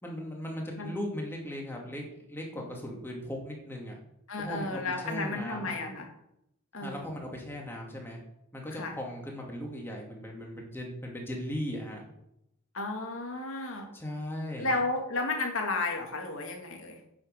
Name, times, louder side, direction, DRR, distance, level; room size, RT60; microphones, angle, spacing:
voice 1, 0.0-4.0 4.4-5.8 6.8-8.2 8.5-12.0 13.9-14.7, equal, 10° left, -1 dB, 2.6 m, -38 dB
voice 2, 4.3-6.1 6.7-7.1 8.7-8.9 12.7-13.9 14.6-17.0, left 2 dB, 75° left, 2 dB, 2.4 m, -33 dB
9.8 x 6.9 x 6.8 m, 0.79 s
head